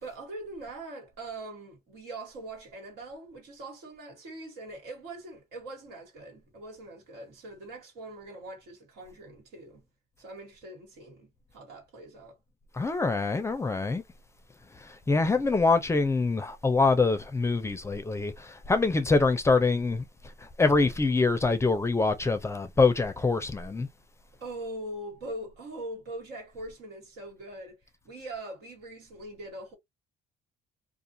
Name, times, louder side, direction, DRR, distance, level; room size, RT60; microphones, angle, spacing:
voice 1, 0.0-9.8 10.2-12.4 24.4-27.8 28.0-29.7, right 1 dB, 90° right, 1.7 m, -42 dB
voice 2, 12.7-14.0 15.1-20.0 20.6-23.9, left 3 dB, 15° left, 0.4 m, -25 dB
2.4 x 2.4 x 2.7 m
cardioid pair, 110°, 17 cm